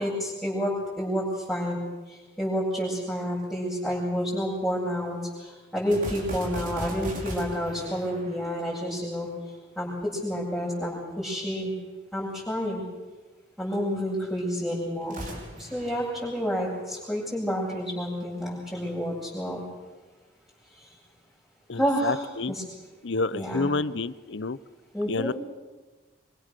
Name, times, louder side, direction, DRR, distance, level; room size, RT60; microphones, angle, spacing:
voice 1, 0.0-1.8 2.4-9.3 9.8-11.7 12.1-12.8 13.6-15.2 15.6-19.6 21.8-22.6 23.3-23.7 24.9-25.3, equal, ahead, -9 dB, 7.3 m, -29 dB
sound 1, 5.9-9.3 15.0-17.1, equal, 45° right, 5.0 m, -38 dB
voice 2, 21.7-22.6 23.0-24.6 25.1-25.3, left 3 dB, 75° left, 17 dB, 0.8 m, -29 dB
26.0 x 24.5 x 6.8 m, 1.2 s
head